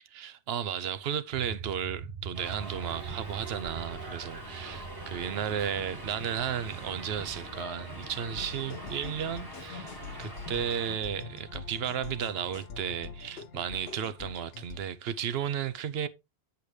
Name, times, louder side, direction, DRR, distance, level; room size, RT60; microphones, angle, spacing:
voice 1, 0.1-16.1, right 8 dB, 70° right, 0.9 m, -34 dB
sound 1, 1.3-13.2, right 7 dB, 45° right, 2.4 m, -46 dB
Subway metro underground, 2.3-11.0, equal, 20° right, 1.4 m, -43 dB
sound 2, 8.1-14.8, left 5 dB, 70° left, 1.0 m, -44 dB
8.1 x 6.8 x 3.1 m
omnidirectional pair, 1.1 m